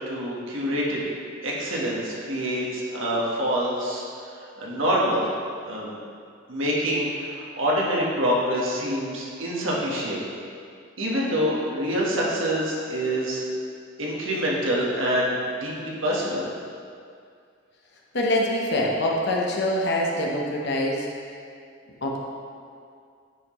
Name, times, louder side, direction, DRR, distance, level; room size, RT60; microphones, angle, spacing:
voice 1, 0.1-1.0 1.4-4.0 4.3-5.3 5.6-6.0 6.5-10.2 11.0-13.5 14.0-16.5, equal, 70° right, -4 dB, 1.5 m, -26 dB
voice 2, 18.1-21.1 21.9-22.2, left 1 dB, 55° left, -2 dB, 1.1 m, -24 dB
9.2 x 5.8 x 3.2 m, 2.3 s
head